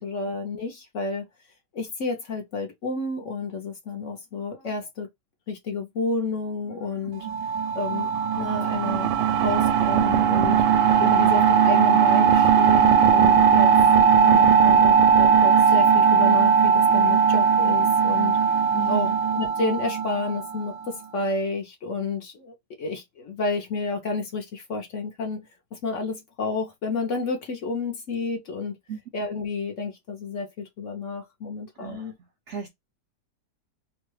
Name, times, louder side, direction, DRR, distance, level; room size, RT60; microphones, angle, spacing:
voice 1, 0.0-1.2 1.7-5.1 5.5-7.3 7.8-8.1 8.4-9.1 9.4-10.6 11.0-13.7 14.0-18.4 18.9-28.8 29.1-32.1, left 3 dB, 60° left, 0.9 m, -30 dB
sound 1, 7.2-20.7, right 7 dB, 90° right, 1.2 m, -18 dB
voice 2, 18.7-19.1 28.9-29.0 31.8-32.1 32.5-32.7, right 6 dB, 65° right, 0.7 m, -34 dB
3.0 x 2.2 x 3.1 m
omnidirectional pair, 1.8 m